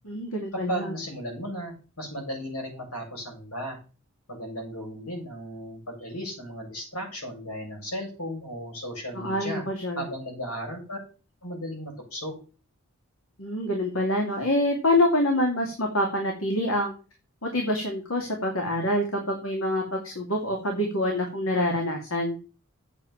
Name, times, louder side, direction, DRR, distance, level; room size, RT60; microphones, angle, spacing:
voice 1, 0.0-0.9 9.1-10.0 13.4-16.9 17.4-22.4, left 1 dB, 65° left, 1 dB, 2.6 m, -26 dB
voice 2, 0.7-3.8 4.3-9.6 9.9-11.0 11.4-12.3, equal, 90° left, 0 dB, 7.5 m, -35 dB
8.9 x 7.1 x 7.3 m, 0.35 s
head